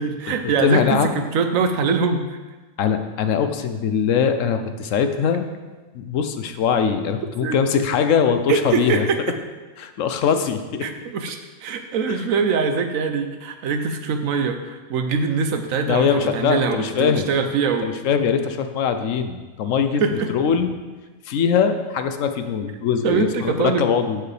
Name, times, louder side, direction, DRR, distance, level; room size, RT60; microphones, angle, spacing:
voice 1, 0.0-2.4 7.4-7.6 8.5-9.2 10.8-17.9 20.0-20.3 23.0-23.9, right 5 dB, 85° right, 7 dB, 1.1 m, -23 dB
voice 2, 0.6-1.2 2.8-5.5 5.9-9.0 9.8-10.8 15.9-17.3 17.8-20.0 20.3-20.7 21.3-24.2, left 7 dB, 75° left, 8 dB, 1.0 m, -21 dB
14.0 x 4.8 x 3.3 m, 1.3 s
omnidirectional pair, 1.4 m